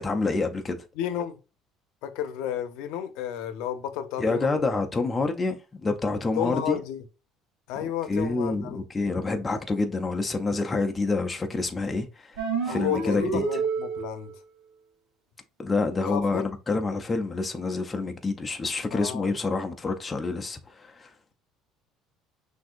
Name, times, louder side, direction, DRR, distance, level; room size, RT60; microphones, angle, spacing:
voice 1, 0.0-0.8 4.2-6.8 7.8-12.4 12.6-13.4 15.6-21.1, left 3 dB, 15° left, 0.5 m, -27 dB
voice 2, 1.0-1.4 2.0-4.6 6.4-7.0 7.7-8.8 12.7-14.4 16.0-16.5 18.9-19.3, left 10 dB, 75° left, 0.6 m, -32 dB
sound 1, 12.4-14.3, right 5 dB, 70° right, 1.3 m, -29 dB
6.1 x 2.6 x 2.5 m
cardioid pair, 165°, 0 cm